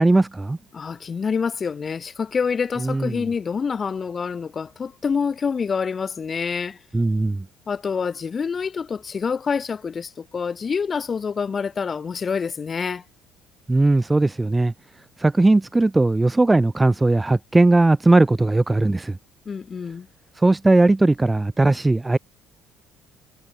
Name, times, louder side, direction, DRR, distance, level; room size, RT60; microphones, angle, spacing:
voice 1, 0.0-0.6 2.8-3.2 6.9-7.5 13.7-14.7 15.2-19.2 20.4-22.2, right 2 dB, 10° right, 0.4 m, -18 dB
voice 2, 0.7-6.8 7.7-13.0 19.4-20.1, left 6 dB, 30° left, 1.6 m, -27 dB
cardioid pair, 115°, 0 cm